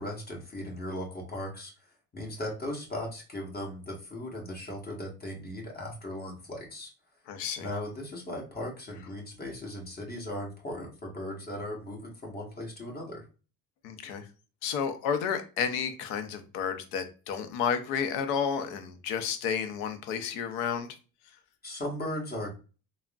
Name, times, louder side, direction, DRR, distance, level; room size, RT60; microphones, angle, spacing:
voice 1, 0.0-1.7 2.1-6.9 7.6-13.3 21.6-22.5, left 1 dB, 25° left, 0 dB, 1.3 m, -37 dB
voice 2, 7.3-7.7 13.8-14.2 14.6-20.9, left 7 dB, 90° left, 9 dB, 0.6 m, -31 dB
3.4 x 2.1 x 2.3 m, 0.34 s
supercardioid pair, 70°, 40 cm